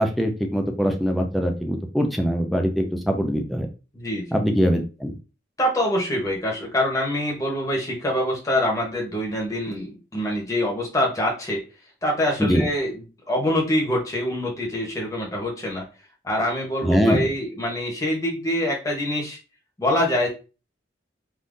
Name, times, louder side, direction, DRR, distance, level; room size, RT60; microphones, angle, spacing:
voice 1, 0.0-3.7 4.3-5.1 12.4-12.6 16.8-17.3, equal, ahead, 3 dB, 0.4 m, -22 dB
voice 2, 3.9-4.3 5.6-11.6 12.0-15.9 16.2-19.4 19.8-20.3, left 1 dB, 15° left, -2 dB, 0.9 m, -25 dB
3.6 x 2.6 x 2.5 m, 0.32 s
head